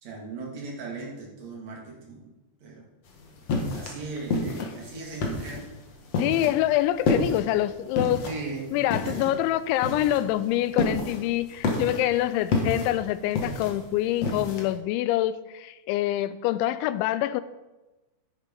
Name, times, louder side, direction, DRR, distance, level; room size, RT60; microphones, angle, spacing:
voice 1, 0.0-2.3 2.6-2.9 3.7-5.7 8.2-8.7 9.0-9.4, right 3 dB, 45° right, 2.8 m, -38 dB
sound 1, 3.1-14.7, left 3 dB, 55° left, 1.8 m, -30 dB
voice 2, 6.2-8.3 8.7-17.4, left 13 dB, 85° left, 2.9 m, -26 dB
11.0 x 10.0 x 5.4 m
omnidirectional pair, 5.4 m